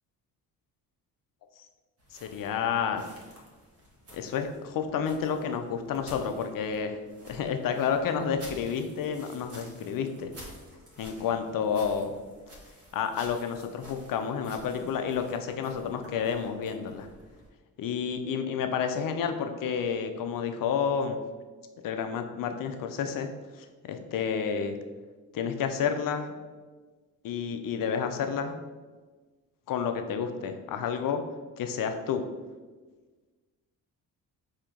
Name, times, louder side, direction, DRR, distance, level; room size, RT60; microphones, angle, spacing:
sound 1, 2.0-17.5, equal, 35° right, 1.2 m, -51 dB
voice 1, 2.1-3.0 4.1-7.0 7.3-10.3 11.0-12.1 12.9-17.1 17.8-21.2 21.8-23.3 23.6-24.8 25.3-26.3 27.2-28.5 29.7-31.2 31.6-32.2, left 7 dB, 55° left, 7 dB, 0.6 m, -30 dB
4.2 x 2.9 x 3.7 m, 1.3 s
cardioid pair, 85°, 39 cm